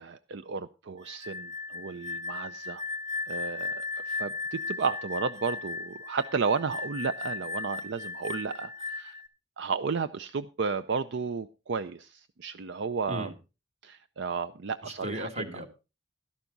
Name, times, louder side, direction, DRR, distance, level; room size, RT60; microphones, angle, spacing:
voice 1, 0.0-2.8 3.3-9.2 9.6-13.3 13.8-15.3, right 5 dB, 65° right, 0.5 m, -33 dB
sound 1, 1.0-9.3, left 4 dB, 15° right, 1.4 m, -36 dB
voice 2, 14.8-15.7, right 1 dB, 35° right, 1.8 m, -36 dB
12.5 x 11.5 x 4.0 m
head